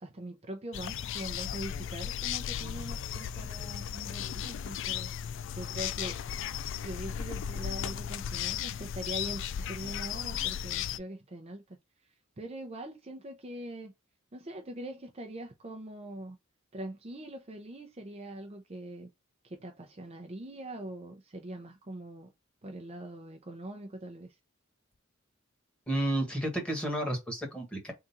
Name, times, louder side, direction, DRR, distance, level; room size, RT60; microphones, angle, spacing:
voice 1, 0.0-5.1 5.5-6.2 6.7-11.6 12.4-13.9 14.3-16.4 16.7-19.1 19.4-22.3 22.6-24.4, right 1 dB, 30° right, 0.6 m, -42 dB
sound 1, 0.7-11.0, left 9 dB, 65° left, 0.3 m, -35 dB
voice 2, 25.9-27.9, right 1 dB, 5° left, 1.5 m, -31 dB
3.7 x 2.5 x 4.1 m
head